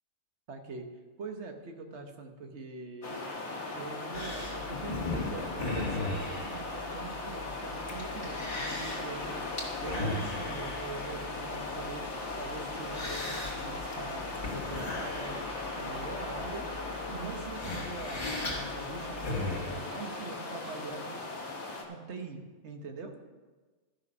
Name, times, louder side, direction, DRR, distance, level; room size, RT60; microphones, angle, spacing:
voice 1, 0.5-0.9 1.2-3.2 3.7-9.4 9.8-12.1 12.4-15.4 15.7-18.3 18.5-21.2 21.9-23.2, right 4 dB, 65° right, 5 dB, 1.4 m, -43 dB
sound 1, 3.0-21.8, left 2 dB, 70° left, 1.7 m, -38 dB
sound 2, 4.1-19.8, left 2 dB, 40° left, 1.9 m, -38 dB
13.5 x 6.1 x 5.3 m, 1.3 s
omnidirectional pair, 1.2 m